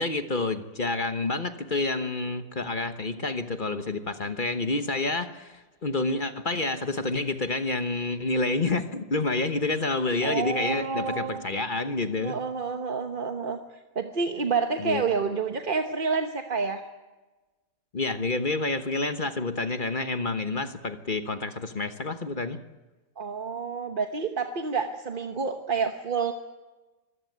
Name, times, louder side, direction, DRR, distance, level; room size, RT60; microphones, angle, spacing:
voice 1, 0.0-12.4 14.8-15.4 17.9-22.6, left 3 dB, 35° left, 9 dB, 1.2 m, -29 dB
voice 2, 10.2-11.4 12.2-13.6 13.9-16.8 23.2-26.3, right 5 dB, 35° right, 6 dB, 1.1 m, -29 dB
24.0 x 16.0 x 9.4 m, 1.2 s
omnidirectional pair, 1.7 m